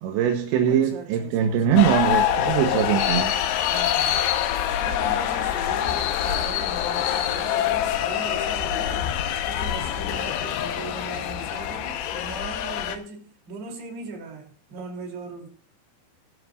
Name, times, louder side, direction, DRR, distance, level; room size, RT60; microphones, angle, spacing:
voice 1, 0.0-3.3, right 9 dB, 80° right, 3.3 m, -22 dB
voice 2, 0.7-1.9 3.6-4.3 4.8-9.1 9.4-15.5, right 4 dB, 60° right, 5.2 m, -39 dB
sound 1, 1.8-13.0, left 10 dB, 85° left, 3.6 m, -25 dB
20.5 x 12.5 x 2.5 m
omnidirectional pair, 5.3 m